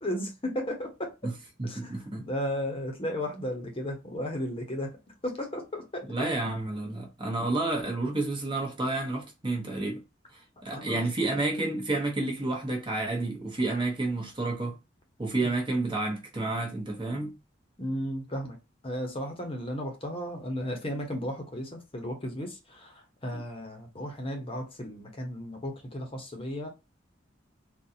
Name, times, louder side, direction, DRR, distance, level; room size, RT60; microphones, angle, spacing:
voice 1, 0.0-1.3 1.6-4.9 5.2-6.3 10.7-11.0 17.8-18.6 18.8-26.7, equal, 30° left, 0.9 m, -34 dB
voice 2, 1.6-2.2 6.1-10.0 10.3-14.8 15.2-17.3, right 2 dB, 25° right, 0.9 m, -30 dB
4.0 x 2.4 x 2.7 m
head